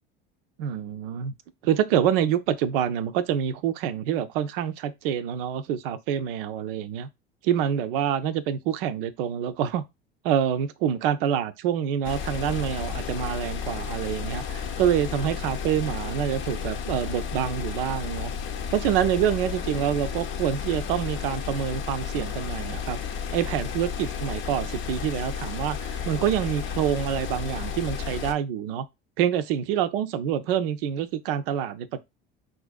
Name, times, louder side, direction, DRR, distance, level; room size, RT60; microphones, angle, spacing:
voice 1, 0.6-1.3 1.6-7.1 7.4-9.8 10.2-18.3 18.7-23.0 23.3-28.9 29.2-32.0, right 9 dB, 70° right, 0.5 m, -26 dB
sound 1, 12.0-28.3, left 7 dB, 45° left, 0.6 m, -32 dB
4.2 x 2.5 x 2.3 m
hypercardioid pair, 70°, 29 cm